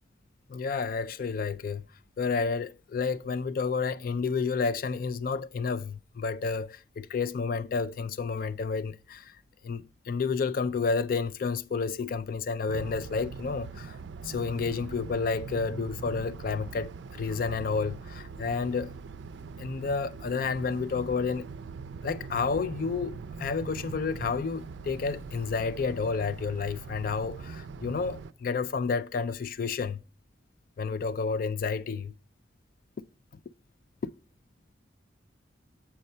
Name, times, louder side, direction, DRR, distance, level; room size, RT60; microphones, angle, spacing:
voice 1, 0.5-1.8 2.2-9.3 9.6-14.0 14.2-19.0 19.6-21.5 22.0-30.0 30.8-32.1, left 5 dB, 50° left, 0.3 m, -30 dB
sound 1, 12.7-28.3, right 5 dB, 90° right, 0.4 m, -42 dB
7.3 x 5.4 x 4.2 m
head